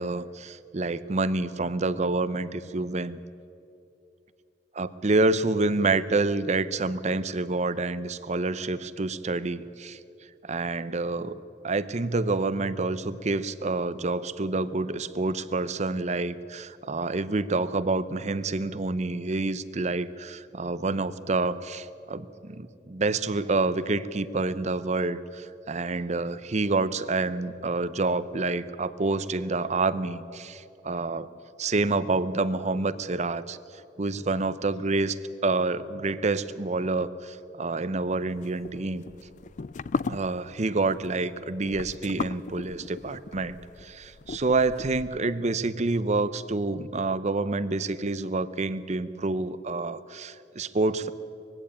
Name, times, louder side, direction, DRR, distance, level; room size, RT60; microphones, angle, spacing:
voice 1, 0.0-3.2 4.7-10.0 10.4-11.3 11.6-31.3 31.6-33.6 34.0-39.0 40.1-51.1, right 3 dB, 40° right, 15 dB, 0.7 m, -28 dB
sound 1, 38.3-45.3, left 4 dB, 45° left, 0.4 m, -37 dB
21.0 x 15.5 x 8.7 m, 2.7 s
head